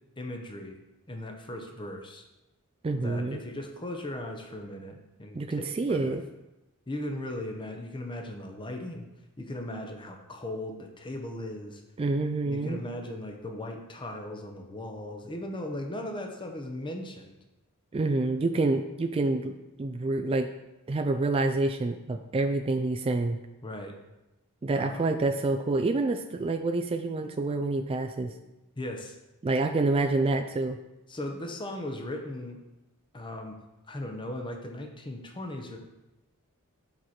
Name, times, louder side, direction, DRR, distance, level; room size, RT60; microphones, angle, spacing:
voice 1, 0.2-0.8 1.1-2.2 2.9-5.6 5.9-6.1 6.9-9.1 9.4-11.8 12.2-17.4 23.6-23.9 24.8-25.0 28.8-29.2 31.1-32.6 33.1-33.6 33.9-35.8, left 1 dB, 20° left, 3 dB, 0.7 m, -38 dB
voice 2, 2.8-3.4 5.3-6.2 12.0-12.8 17.9-20.5 20.9-23.4 24.6-28.3 29.4-30.8, right 2 dB, 25° right, 6 dB, 0.3 m, -27 dB
8.7 x 4.7 x 4.3 m, 0.99 s
head